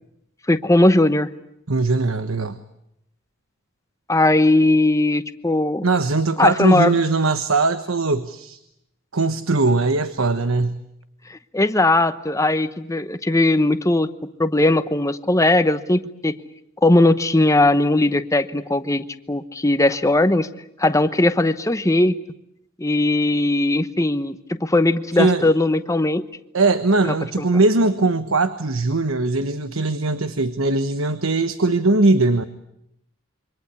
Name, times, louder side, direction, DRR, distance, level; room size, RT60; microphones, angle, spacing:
voice 1, 0.5-1.3 4.1-5.8 6.4-6.9 11.3-14.1 14.4-16.4 16.8-20.5 20.8-22.2 22.8-24.4 24.6-26.2 27.0-27.4, left 2 dB, 15° left, 11 dB, 1.0 m, -18 dB
voice 2, 1.7-2.6 5.8-8.6 9.1-10.8 25.1-25.5 26.5-32.4, right 3 dB, 85° right, 11 dB, 1.2 m, -20 dB
28.0 x 24.5 x 8.3 m, 0.79 s
head